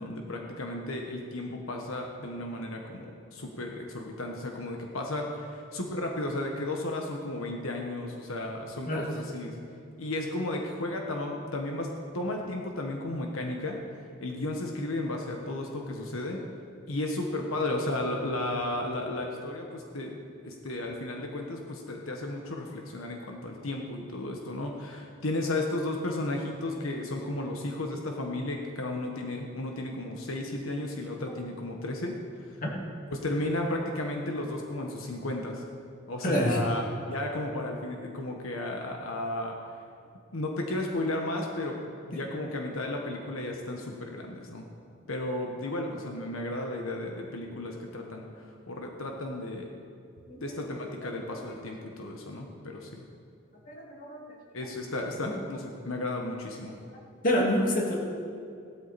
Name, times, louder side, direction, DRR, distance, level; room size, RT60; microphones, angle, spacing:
voice 1, 0.0-9.6 10.0-11.9 12.1-16.4 16.9-20.2 20.4-32.6 33.1-35.6 36.1-39.8 40.3-41.8 42.1-44.6 45.1-49.7 50.4-53.0 54.5-56.7, left 1 dB, 85° left, 1 dB, 1.3 m, -34 dB
voice 2, 36.2-36.6 50.3-50.4 51.5-51.6 53.7-54.2 57.2-58.0, equal, 40° left, -2 dB, 2.5 m, -27 dB
17.0 x 12.5 x 4.2 m, 2.4 s
head